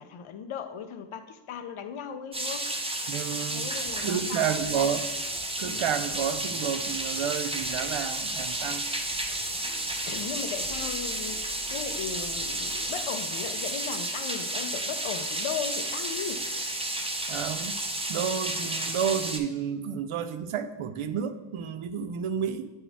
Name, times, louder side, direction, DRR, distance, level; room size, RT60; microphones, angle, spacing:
voice 1, 0.0-2.7 3.5-4.9 5.6-5.8 10.1-16.5, left 7 dB, 75° left, 0.7 m, -37 dB
sound 1, 2.3-19.4, right 1 dB, 10° right, 0.6 m, -32 dB
voice 2, 3.1-3.7 4.0-5.0 5.6-8.9 17.3-17.8 18.1-22.7, right 8 dB, 80° right, 0.6 m, -30 dB
sound 2, 3.6-12.9, right 2 dB, 35° right, 1.2 m, -50 dB
8.8 x 4.4 x 3.5 m
cardioid pair, 70°, 49 cm